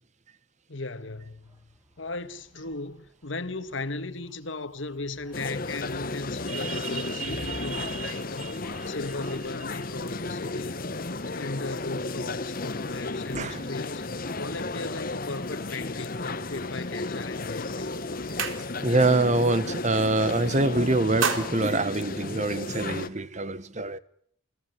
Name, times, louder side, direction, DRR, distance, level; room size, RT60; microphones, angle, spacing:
voice 1, 0.7-1.6 2.0-8.5 8.9-10.9 11.4-14.0 14.4-17.9, left 3 dB, 70° left, 1.8 m, -37 dB
sound 1, 1.1-20.5, equal, 15° right, 6.1 m, -58 dB
sound 2, 5.3-23.1, left 3 dB, 45° left, 1.2 m, -34 dB
voice 2, 6.5-8.5 13.3-13.7 18.8-24.0, right 2 dB, 35° right, 1.2 m, -26 dB
sound 3, 18.2-19.1 19.4-19.7 20.0-20.6 20.9-22.8, right 5 dB, 80° right, 3.5 m, -33 dB
29.5 x 18.0 x 9.4 m
head